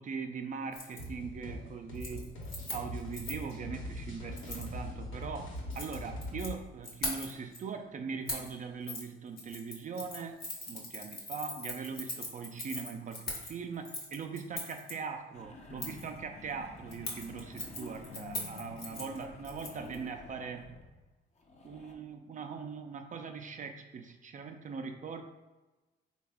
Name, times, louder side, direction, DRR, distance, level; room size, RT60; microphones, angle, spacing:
voice 1, 0.0-2.4 2.7-20.7 21.6-25.2, right 5 dB, 40° right, 5 dB, 0.4 m, -41 dB
Keys jangling, 0.7-1.0 1.4-1.7 1.9-3.5 4.4-4.7 5.6-6.5 6.8-7.6 8.3-8.5 8.9-9.0 9.4-14.9 15.8-16.1 16.9-20.0 20.2-20.3, left 2 dB, 50° left, 1.0 m, -41 dB
sound 1, 1.0-6.6, left 1 dB, 70° left, 1.1 m, -42 dB
sound 2, 15.3-21.1 21.4-22.0, left 3 dB, 35° left, 0.6 m, -49 dB
3.4 x 2.3 x 3.3 m, 1.2 s
cardioid pair, 90°, 20 cm